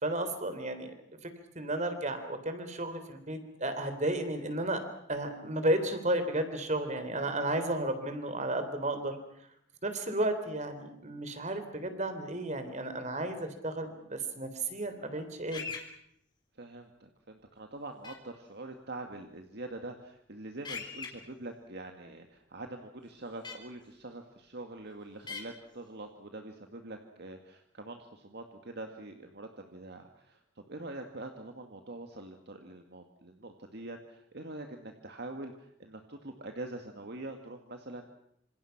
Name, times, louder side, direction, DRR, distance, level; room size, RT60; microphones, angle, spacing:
voice 1, 0.0-0.9 1.2-4.8 5.1-9.2 9.8-15.6, right 1 dB, 40° right, 9 dB, 3.7 m, -33 dB
sound 1, 15.5-15.8 18.0-18.1 20.6-21.1 23.4-23.5 25.3-25.4, left 5 dB, 25° left, 3.8 m, -39 dB
voice 2, 16.6-38.0, right 2 dB, 55° right, 4 dB, 2.0 m, -44 dB
27.0 x 27.0 x 6.0 m, 0.72 s
head